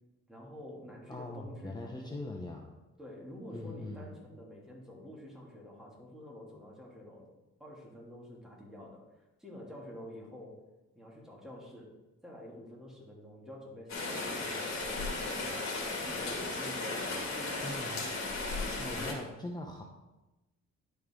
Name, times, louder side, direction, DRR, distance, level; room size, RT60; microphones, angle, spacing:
voice 1, 0.3-2.2 3.0-7.3 7.6-9.1 9.4-10.6 10.9-11.9 12.2-18.1 18.7-19.3, left 1 dB, ahead, -4 dB, 2.8 m, -48 dB
voice 2, 1.1-2.7 3.5-4.1 17.6-18.1 18.8-19.8, left 2 dB, 15° left, 0 dB, 0.9 m, -41 dB
Rain, 13.9-19.1, left 3 dB, 60° left, 2.5 m, -35 dB
11.0 x 5.4 x 3.8 m, 1.0 s
cardioid pair, 90°, 30 cm